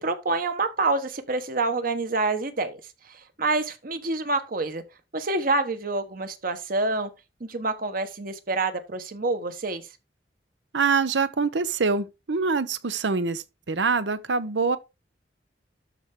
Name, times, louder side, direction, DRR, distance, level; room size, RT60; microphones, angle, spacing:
voice 1, 0.0-2.8 3.1-4.8 5.1-7.1 7.4-9.8, right 3 dB, 55° right, 1.2 m, -27 dB
voice 2, 10.7-14.8, right 4 dB, 90° right, 0.8 m, -25 dB
12.5 x 4.6 x 3.7 m
head